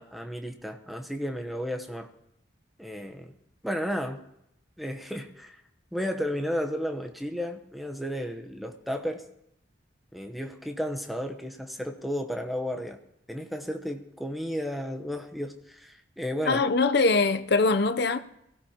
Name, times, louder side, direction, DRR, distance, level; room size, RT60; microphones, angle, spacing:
voice 1, 0.0-2.1 2.8-3.3 3.6-4.2 4.8-5.6 5.9-9.2 10.1-13.0 13.3-16.6, equal, ahead, 0.9 m, -33 dB
voice 2, 16.5-18.2, left 3 dB, 60° left, 0.7 m, -22 dB
23.0 x 16.0 x 2.9 m
head